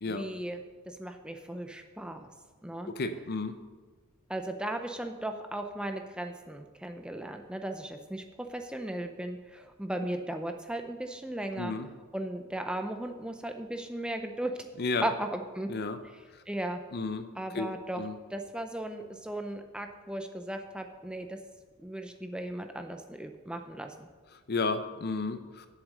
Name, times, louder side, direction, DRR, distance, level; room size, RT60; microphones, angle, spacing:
voice 1, 0.1-0.6 0.9-2.3 2.6-2.9 4.3-11.7 12.1-14.5 15.0-15.7 16.5-16.8 17.4-18.0 18.3-21.4 21.8-24.1, right 1 dB, 5° right, 5 dB, 0.5 m, -36 dB
voice 2, 3.0-3.6 11.5-11.9 14.8-15.0 15.7-16.0 16.3-16.4 16.9-17.3 17.5-17.7 18.0-18.2 24.3-25.7, left 3 dB, 45° left, 9 dB, 0.6 m, -32 dB
7.8 x 7.3 x 6.4 m, 1.4 s
head